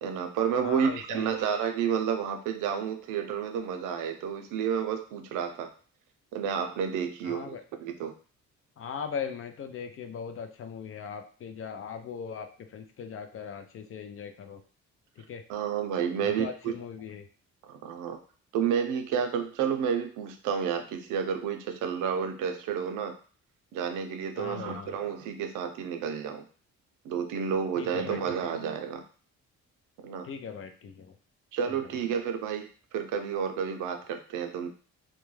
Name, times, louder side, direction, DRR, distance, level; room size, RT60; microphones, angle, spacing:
voice 1, 0.0-5.7 6.3-8.1 15.5-16.7 17.7-18.2 18.5-23.1 23.7-26.4 27.0-29.0 30.0-30.3 31.5-34.7, right 7 dB, 85° right, 6 dB, 0.5 m, -30 dB
voice 2, 0.6-1.4 7.2-7.6 8.8-12.5 12.7-14.6 15.2-15.4 16.2-17.2 24.4-24.9 27.8-28.2 30.2-31.1, left 7 dB, 45° left, 7 dB, 0.4 m, -39 dB
2.2 x 2.2 x 3.1 m, 0.40 s
cardioid pair, 90°, 30 cm